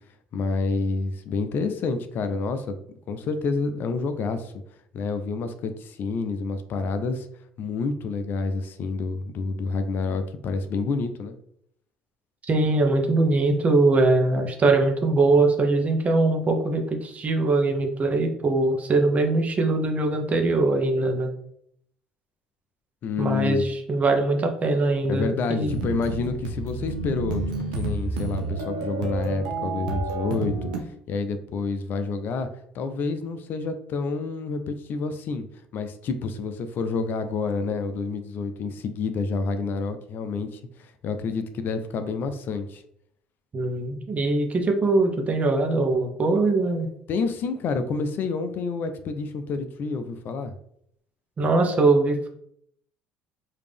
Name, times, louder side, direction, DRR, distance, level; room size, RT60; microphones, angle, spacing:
voice 1, 0.3-2.8 3.1-4.5 4.9-7.3 7.6-11.4 23.0-23.7 25.1-27.4 27.8-32.5 32.7-35.4 35.7-42.8 47.1-50.5, left 4 dB, 50° left, 9 dB, 0.5 m, -28 dB
voice 2, 12.4-21.3 23.2-25.8 43.5-46.9 51.4-52.3, right 2 dB, 35° right, 4 dB, 1.0 m, -22 dB
sound 1, 25.7-30.8, right 3 dB, 80° right, 0.7 m, -30 dB
4.9 x 2.8 x 3.4 m, 0.70 s
hypercardioid pair, 60°, 4 cm